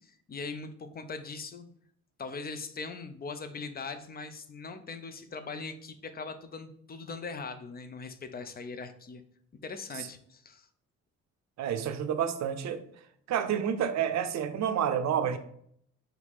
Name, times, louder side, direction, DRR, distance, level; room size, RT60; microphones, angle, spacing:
voice 1, 0.0-1.7 2.2-9.2 9.6-10.7, left 4 dB, 30° left, 9 dB, 0.5 m, -40 dB
voice 2, 11.6-12.8 13.3-15.4, right 8 dB, 65° right, 9 dB, 0.6 m, -29 dB
4.6 x 2.6 x 3.5 m, 0.66 s
cardioid pair, 90°, 30 cm